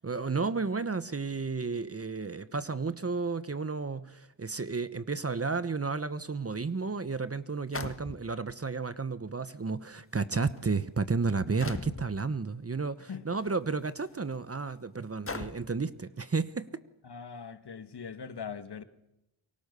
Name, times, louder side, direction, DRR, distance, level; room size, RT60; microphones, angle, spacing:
voice 1, 0.0-16.8, right 4 dB, 30° right, 1.1 m, -32 dB
sound 1, 6.6-6.7 7.7-8.5 9.5-9.6 10.3-10.6 11.6-12.1 13.4-13.5 14.2-14.3 15.3-15.8, left 3 dB, 25° left, 1.7 m, -39 dB
voice 2, 17.0-18.8, left 6 dB, 50° left, 1.9 m, -41 dB
29.0 x 24.0 x 6.9 m
wide cardioid pair, 90°, 50 cm